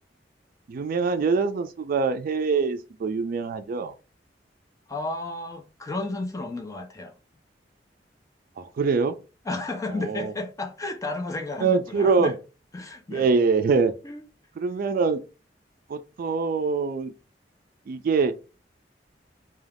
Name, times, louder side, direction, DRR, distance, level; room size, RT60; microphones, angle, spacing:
voice 1, 0.7-3.9 8.6-9.2 9.9-10.3 11.6-12.3 13.1-13.9 14.6-15.2 15.9-17.1 17.9-18.3, right 4 dB, 50° right, 0.3 m, -24 dB
voice 2, 4.9-7.1 9.5-12.4 12.7-13.3 14.0-14.2, left 2 dB, 20° left, 0.4 m, -32 dB
2.3 x 2.3 x 3.3 m
head